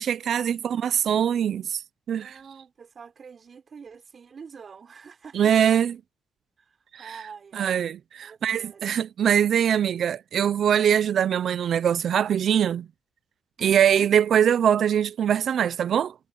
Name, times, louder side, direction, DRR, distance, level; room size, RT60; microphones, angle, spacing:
voice 1, 0.0-1.8 2.1-2.4 5.3-6.0 6.9-7.1 7.5-12.9 13.6-16.1, right 9 dB, 60° right, 0.7 m, -22 dB
voice 2, 2.2-5.8 6.6-8.0 8.2-9.0 13.6-14.1, right 6 dB, 45° right, 4.3 m, -46 dB
cardioid pair, 90°, 0 cm